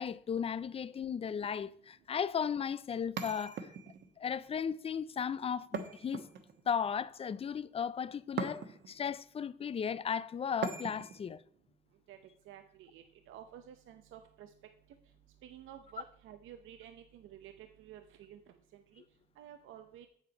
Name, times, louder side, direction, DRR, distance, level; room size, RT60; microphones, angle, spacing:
voice 1, 0.0-3.7 4.2-6.3 6.7-11.4, left 7 dB, 30° left, 0.4 m, -36 dB
sound 1, 3.2-4.1 5.7-6.7 8.4-9.0 10.6-11.2, right 6 dB, 60° right, 1.2 m, -40 dB
voice 2, 12.5-14.5 15.4-18.4 18.7-19.0 19.4-20.1, right 10 dB, 80° right, 0.7 m, -52 dB
7.6 x 7.2 x 5.1 m
cardioid pair, 90°, 20 cm